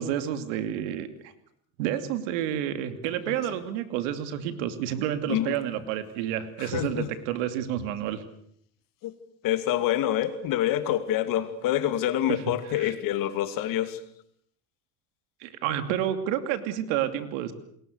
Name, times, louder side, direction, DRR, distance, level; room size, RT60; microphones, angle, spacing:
voice 1, 0.0-1.3 1.8-8.2 12.8-12.9 15.4-17.5, right 10 dB, 85° right, 10 dB, 2.7 m, -30 dB
voice 2, 6.6-7.1 9.0-9.1 9.4-14.0, left 12 dB, 60° left, 10 dB, 2.7 m, -27 dB
29.0 x 21.0 x 6.6 m, 0.67 s
cardioid pair, 120°, 37 cm